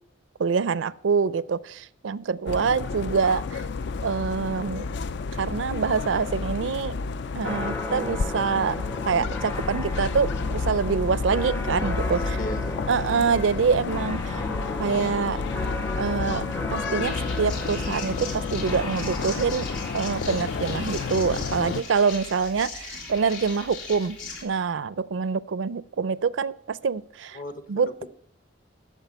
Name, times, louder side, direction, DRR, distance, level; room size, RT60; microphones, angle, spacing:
voice 1, 0.4-3.6 4.0-4.9 5.3-7.0 7.4-8.8 9.1-12.4 12.9-14.4 14.8-15.4 15.9-19.7 19.9-27.4 27.7-27.9, right 5 dB, 70° right, 18 dB, 0.4 m, -25 dB
sound 1, 2.5-21.8, left 4 dB, 60° left, 0.4 m, -31 dB
sound 2, 7.4-21.4, left 1 dB, 10° left, 0.5 m, -35 dB
voice 2, 12.1-12.8 27.3-28.1, left 1 dB, 45° left, 10 dB, 1.0 m, -37 dB
sound 3, 17.0-24.4, left 4 dB, 80° left, 3.5 m, -38 dB
9.0 x 7.2 x 8.0 m, 0.68 s
head